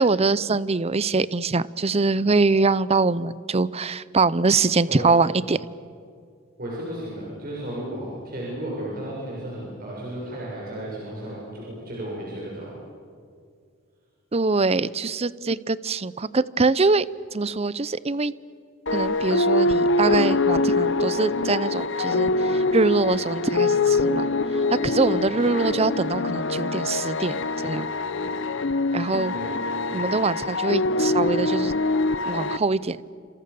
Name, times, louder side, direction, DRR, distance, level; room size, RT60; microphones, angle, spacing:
voice 1, 0.0-5.6 14.3-17.0 17.3-18.3 18.9-24.2 24.7-27.4 27.6-27.9 28.9-29.3 29.9-31.7 32.3-33.0, right 3 dB, 30° right, 18 dB, 0.7 m, -23 dB
voice 2, 6.6-12.8 25.3-25.4 29.3-29.6, right 1 dB, 50° right, -5 dB, 7.2 m, -34 dB
sound 1, 18.9-32.6, left 2 dB, 65° left, 0.9 m, -24 dB
29.5 x 27.0 x 7.0 m, 2.2 s
head